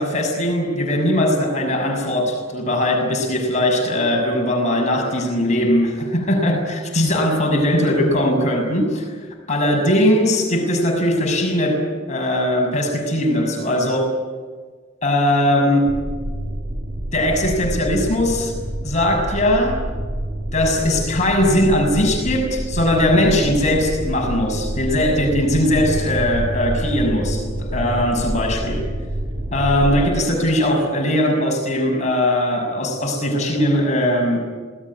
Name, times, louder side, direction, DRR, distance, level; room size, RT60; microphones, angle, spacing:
voice 1, 0.0-9.2 9.5-14.1 15.0-16.0 17.1-18.5 18.8-19.9 20.5-28.9 29.5-34.4, left 1 dB, 35° left, 2 dB, 6.5 m, -19 dB
sound 1, 15.9-30.1, right 1 dB, 35° right, 1.7 m, -27 dB
27.0 x 19.0 x 9.8 m, 1.5 s
head